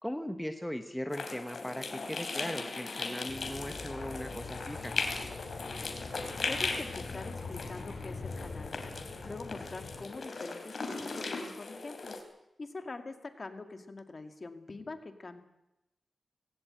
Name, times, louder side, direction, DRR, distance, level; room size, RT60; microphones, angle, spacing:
voice 1, 0.0-4.9, equal, 5° left, 6 dB, 1.1 m, -38 dB
sound 1, 1.1-12.2, left 3 dB, 55° left, 3.4 m, -38 dB
sound 2, 3.3-10.0, left 3 dB, 70° left, 6.3 m, -44 dB
voice 2, 6.5-8.8 9.2-12.2 12.6-15.4, left 3 dB, 35° left, 7 dB, 2.0 m, -44 dB
18.5 x 17.5 x 8.9 m, 0.91 s
wide cardioid pair, 135°, 0 cm